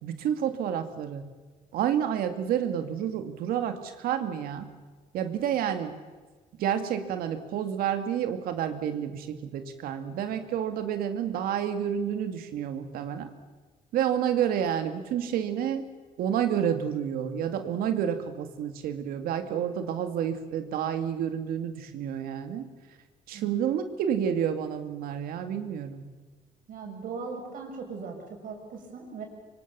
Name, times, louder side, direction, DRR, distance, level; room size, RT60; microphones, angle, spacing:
voice 1, 0.0-1.2 1.7-4.7 5.1-5.9 6.6-13.3 13.9-15.9 16.2-22.7 23.3-26.0, right 9 dB, 85° right, 8 dB, 2.3 m, -29 dB
voice 2, 23.3-23.7 26.7-28.2 28.4-29.2, right 5 dB, 65° right, 2 dB, 6.5 m, -39 dB
25.5 x 24.5 x 6.9 m, 1.3 s
cardioid pair, 100°, 15 cm